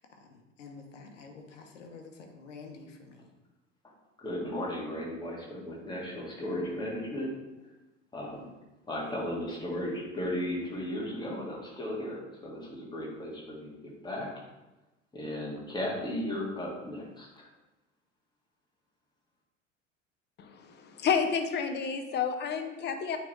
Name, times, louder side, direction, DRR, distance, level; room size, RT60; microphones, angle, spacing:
voice 1, 0.0-3.3, left 4 dB, 70° left, 3 dB, 1.0 m, -49 dB
voice 2, 4.2-7.3 8.1-8.5 8.9-14.3 15.1-17.5, left 1 dB, 10° left, -3 dB, 1.9 m, -35 dB
voice 3, 20.4-23.2, left 6 dB, 30° left, 6 dB, 0.7 m, -30 dB
9.0 x 3.5 x 3.2 m, 1.0 s
figure-of-eight pair, 70°, 37 cm